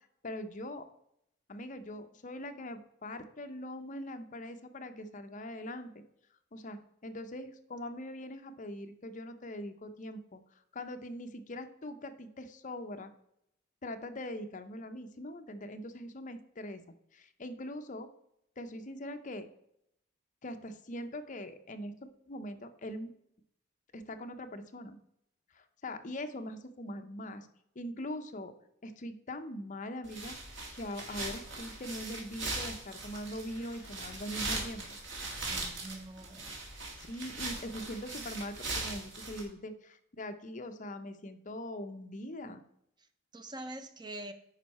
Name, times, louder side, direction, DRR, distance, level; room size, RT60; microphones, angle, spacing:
voice 1, 0.2-0.9 1.5-6.0 6.5-13.1 13.8-16.8 17.1-18.1 18.6-19.5 20.4-23.1 23.9-25.0 25.5-27.5 27.8-28.5 28.8-30.4 30.7-34.9 37.0-42.6, left 1 dB, 40° left, 8 dB, 0.7 m, -42 dB
sound 1, 30.0-39.4, right 2 dB, 65° right, 2.1 m, -40 dB
voice 2, 35.4-36.5 43.3-44.3, right 1 dB, 20° right, 9 dB, 0.5 m, -44 dB
9.1 x 5.5 x 4.2 m, 0.77 s
head